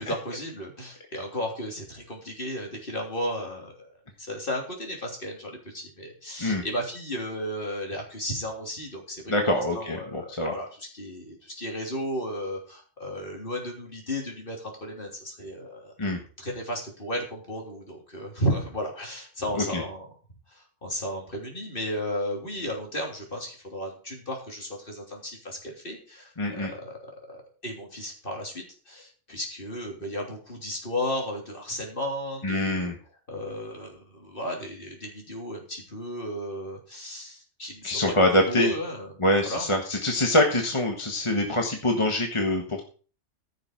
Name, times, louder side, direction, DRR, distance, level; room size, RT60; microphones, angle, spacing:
voice 1, 0.0-15.9 16.4-20.0 20.5-27.0 27.3-32.9 33.3-39.1 39.4-39.7, equal, 45° left, 0 dB, 3.4 m, -34 dB
voice 2, 9.3-10.5 16.0-16.2 19.6-19.8 26.4-26.7 32.4-33.0 37.8-38.7 39.2-42.8, left 1 dB, 25° left, 2 dB, 1.5 m, -24 dB
15.0 x 6.7 x 4.7 m, 0.39 s
omnidirectional pair, 1.2 m